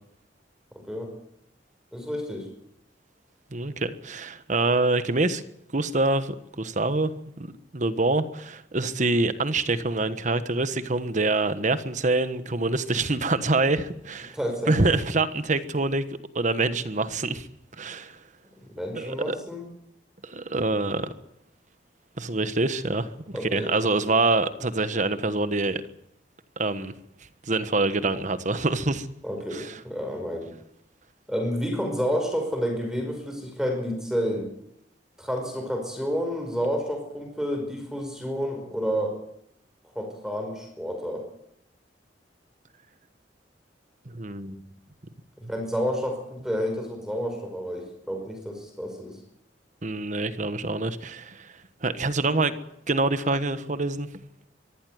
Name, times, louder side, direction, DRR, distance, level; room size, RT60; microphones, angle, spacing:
voice 1, 1.9-2.5 14.3-14.7 18.7-19.7 23.3-23.7 29.2-30.5 31.3-34.5 35.2-39.2 39.9-41.3 45.5-49.2, equal, 5° right, 4 dB, 5.2 m, -30 dB
voice 2, 3.5-5.4 5.7-14.4 14.7-16.0 16.3-17.5 17.8-18.2 19.0-19.4 20.2-21.1 22.2-25.8 26.6-26.9 27.4-29.1 29.5-29.8 44.1-44.6 49.8-51.5 51.8-52.5 52.9-54.1, right 2 dB, 45° right, 12 dB, 1.3 m, -25 dB
23.5 x 14.5 x 9.4 m, 0.77 s
head